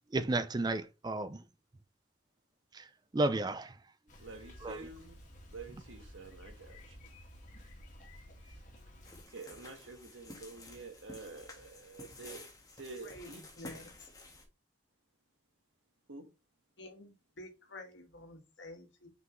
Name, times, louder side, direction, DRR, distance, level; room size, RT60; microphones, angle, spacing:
voice 1, 0.1-1.4 2.7-2.9 3.1-3.7 4.6-4.9, right 2 dB, 20° right, 0.4 m, -32 dB
Bicycle, 4.1-9.2, equal, 40° left, 2.0 m, -53 dB
voice 2, 4.2-5.2 5.5-7.0 9.3-12.4 12.8-13.4 16.1-16.2, right 3 dB, 85° right, 1.4 m, -48 dB
sound 1, 9.0-14.4, left 2 dB, 20° left, 1.5 m, -52 dB
voice 3, 13.0-14.1 16.8-19.1, left 1 dB, 70° left, 1.8 m, -50 dB
5.9 x 5.1 x 3.1 m
head